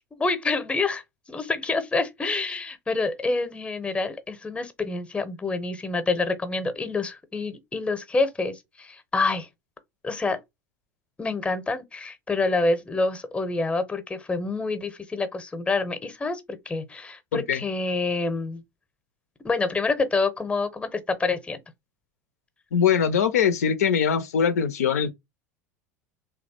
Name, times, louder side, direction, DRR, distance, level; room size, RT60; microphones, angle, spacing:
voice 1, 0.2-1.0 1.3-9.5 10.0-10.4 11.2-18.6 19.4-21.6, left 3 dB, 15° left, 0.7 m, -27 dB
voice 2, 22.7-25.1, left 7 dB, 70° left, 0.4 m, -22 dB
3.1 x 2.3 x 4.1 m
figure-of-eight pair, 75°, 9 cm